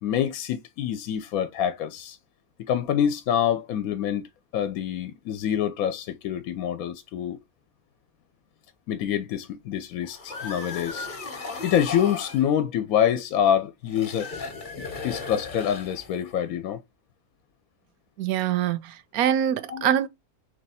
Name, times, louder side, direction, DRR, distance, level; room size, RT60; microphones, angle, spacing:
voice 1, 0.0-2.2 2.6-4.2 4.5-7.4 8.9-11.1 11.6-14.3 15.0-16.8 19.7-19.9, left 9 dB, 75° left, 1.0 m, -26 dB
sound 1, 10.0-12.5 13.9-16.3, left 4 dB, 40° left, 0.9 m, -36 dB
voice 2, 18.2-20.1, right 10 dB, 80° right, 1.0 m, -24 dB
3.4 x 3.1 x 4.1 m
omnidirectional pair, 1.6 m